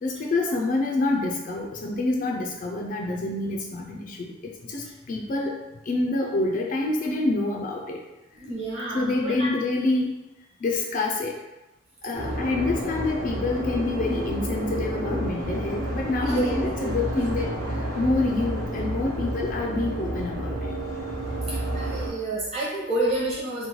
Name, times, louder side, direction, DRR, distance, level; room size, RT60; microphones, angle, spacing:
voice 1, 0.0-5.5 5.9-8.0 8.9-10.1 10.6-11.4 12.0-17.5 18.0-20.7, left 2 dB, 40° left, 0 dB, 0.3 m, -27 dB
voice 2, 8.4-9.5 16.2-16.9 21.5-23.7, right 2 dB, 30° right, -8 dB, 1.2 m, -29 dB
sound 1, 12.1-22.1, right 1 dB, 75° right, 1.1 m, -30 dB
3.0 x 2.2 x 3.7 m, 1.0 s
head